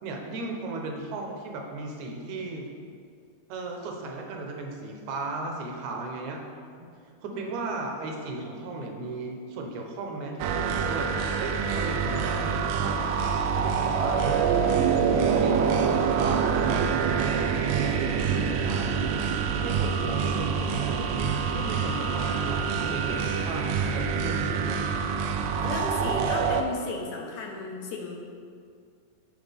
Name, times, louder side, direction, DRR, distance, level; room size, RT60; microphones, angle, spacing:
voice 1, 0.0-2.7 3.5-6.4 6.8-6.9 7.2-11.1 11.4-13.2 13.5-14.7 15.1-17.4 17.8-19.2 19.6-24.8, right 3 dB, 70° right, 2 dB, 2.2 m, -35 dB
sound 1, 10.4-26.6, right 6 dB, 90° right, 1.5 m, -26 dB
voice 2, 25.6-28.2, left 3 dB, 70° left, 0 dB, 2.0 m, -34 dB
14.0 x 4.7 x 3.5 m, 2.2 s
omnidirectional pair, 3.6 m